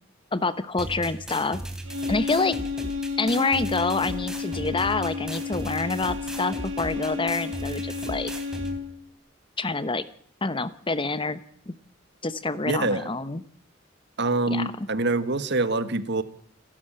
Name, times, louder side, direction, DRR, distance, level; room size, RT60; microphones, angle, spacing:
voice 1, 0.3-1.6 2.1-2.6 3.2-8.3 9.6-10.1 10.4-11.7 12.2-13.4 14.5-14.9, left 3 dB, 25° left, 15 dB, 0.9 m, -27 dB
sound 1, 0.8-8.8, right 1 dB, 5° right, 3.2 m, -37 dB
sound 2, 1.8-9.0, left 4 dB, 85° right, 5.2 m, -32 dB
voice 2, 12.7-13.1 14.2-16.2, right 2 dB, 60° right, 12 dB, 1.5 m, -25 dB
29.0 x 12.5 x 8.8 m, 0.62 s
head